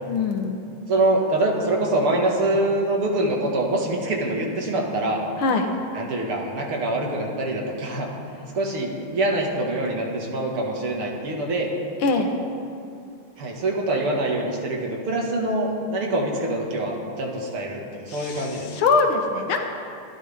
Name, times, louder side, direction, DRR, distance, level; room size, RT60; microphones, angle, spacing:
voice 1, 0.1-0.5 5.4-5.7 12.0-12.3 18.1-19.7, left 4 dB, 75° left, 3 dB, 2.3 m, -23 dB
voice 2, 0.9-5.2 5.9-8.1 8.5-11.7 13.4-18.7, right 1 dB, 85° right, -1 dB, 3.0 m, -25 dB
25.5 x 15.0 x 3.7 m, 2.4 s
omnidirectional pair, 2.3 m